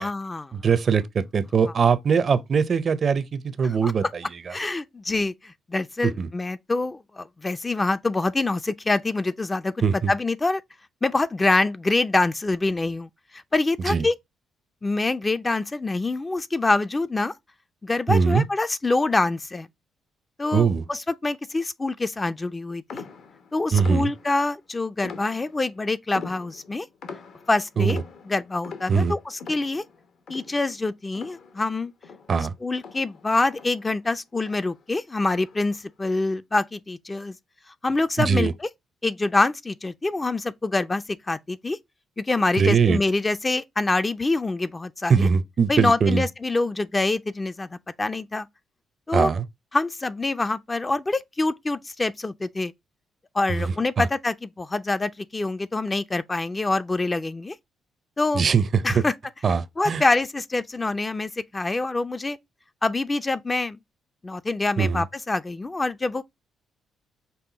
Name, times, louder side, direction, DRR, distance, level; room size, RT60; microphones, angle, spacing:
voice 1, 0.0-0.5 3.6-3.9 4.5-9.7 10.1-10.6 11.0-14.1 14.8-17.3 17.8-19.7 20.4-23.0 23.5-26.9 27.5-28.0 28.2-29.8 30.3-31.9 32.6-37.3 37.8-38.7 39.0-41.8 42.2-45.3 45.7-48.5 49.1-49.3 49.7-52.7 53.3-57.6 58.2-58.4 58.8-59.1 59.8-62.4 62.8-63.8 64.2-66.2, left 2 dB, 20° left, 0.4 m, -25 dB
voice 2, 0.5-4.2 6.0-6.3 9.8-10.1 13.9-14.1 18.1-18.4 20.5-20.8 23.7-24.1 27.8-28.0 28.9-29.1 32.3-32.5 38.2-38.5 42.5-43.0 45.1-46.2 49.1-49.5 53.5-54.1 58.3-59.0 59.4-60.0 64.8-65.0, right 6 dB, 45° right, 0.5 m, -21 dB
sound 1, 22.9-24.5 25.0-25.8 26.1-31.8 32.0-34.1 34.4-34.8 35.3-35.8, left 5 dB, 65° left, 0.9 m, -43 dB
5.5 x 2.3 x 3.8 m
cardioid pair, 90°, 0 cm